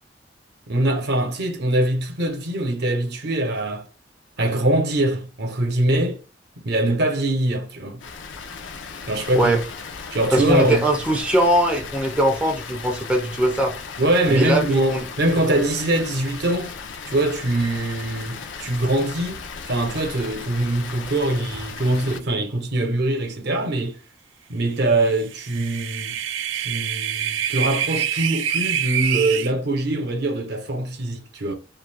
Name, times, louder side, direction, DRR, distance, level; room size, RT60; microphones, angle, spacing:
voice 1, 0.7-3.8 4.4-6.2 6.6-8.0 9.1-9.6 10.1-10.9 14.0-16.7 17.1-19.4 19.7-24.0 24.5-26.2 26.5-31.5, right 1 dB, 60° right, 0.7 m, -23 dB
Water, 8.0-22.2, left 5 dB, 80° left, 0.5 m, -36 dB
voice 2, 10.3-13.7 14.3-15.1, right 1 dB, 5° right, 0.4 m, -21 dB
sound 1, 25.2-29.5, right 9 dB, 80° right, 0.3 m, -26 dB
2.5 x 2.4 x 3.3 m
head